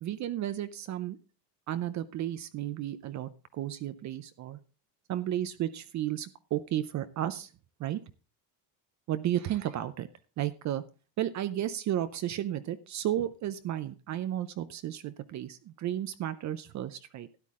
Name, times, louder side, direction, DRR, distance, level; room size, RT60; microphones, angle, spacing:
voice 1, 0.0-1.2 1.7-4.6 5.1-7.5 7.8-8.0 9.1-10.1 10.4-10.8 11.2-17.3, right 12 dB, 35° right, 12 dB, 0.6 m, -33 dB
12.5 x 10.5 x 3.7 m, 0.33 s
cardioid pair, 150°, 49 cm